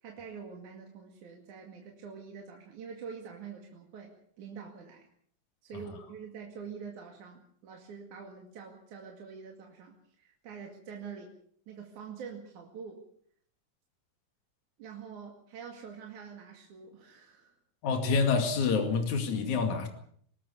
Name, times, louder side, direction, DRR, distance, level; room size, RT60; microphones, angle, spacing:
voice 1, 0.0-5.1 5.6-11.4 11.7-13.0 14.8-17.6, right 6 dB, 75° right, 1 dB, 3.7 m, -45 dB
voice 2, 17.8-19.9, left 5 dB, 75° left, 5 dB, 3.7 m, -27 dB
23.5 x 18.5 x 6.8 m, 0.62 s
omnidirectional pair, 3.4 m